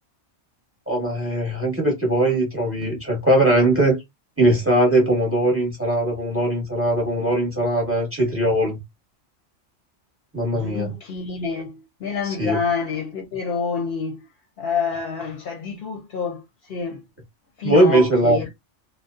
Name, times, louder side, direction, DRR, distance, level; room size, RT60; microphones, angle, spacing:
voice 1, 0.9-4.0 4.4-8.8 10.3-10.9 12.4-12.6 17.6-18.4, right 1 dB, 10° right, 0.9 m, -20 dB
voice 2, 10.5-14.3 14.6-17.0 17.6-18.5, left 5 dB, 60° left, 0.7 m, -28 dB
2.6 x 2.1 x 2.3 m
omnidirectional pair, 1.3 m